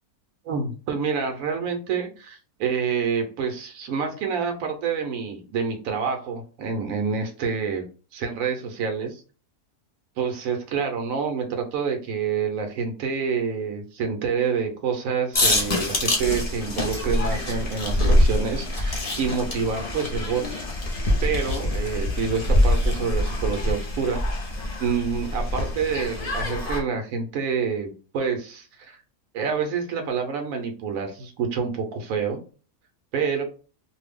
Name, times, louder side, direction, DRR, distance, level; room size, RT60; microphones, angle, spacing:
voice 1, 0.4-7.9 8.1-9.1 10.2-20.6 21.2-24.2 24.8-29.0 29.3-32.4 33.1-33.4, right 6 dB, 70° right, 4 dB, 1.1 m, -27 dB
sound 1, 15.3-26.8, left 1 dB, 35° left, 0.6 m, -25 dB
2.6 x 2.2 x 3.4 m, 0.37 s
omnidirectional pair, 1.5 m